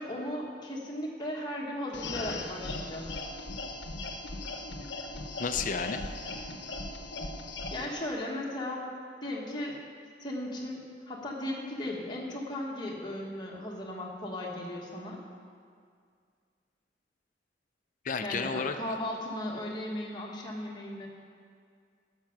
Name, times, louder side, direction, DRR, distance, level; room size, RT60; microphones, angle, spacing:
voice 1, 0.0-3.1 7.7-8.9 9.2-9.8 10.2-15.2 18.2-21.1, left 1 dB, 25° left, -2 dB, 1.5 m, -36 dB
sound 1, 1.9-7.9, left 2 dB, 70° left, 0.9 m, -38 dB
voice 2, 5.4-6.0 18.0-18.7, left 5 dB, 45° left, 8 dB, 0.6 m, -31 dB
11.0 x 6.6 x 5.9 m, 2.1 s
head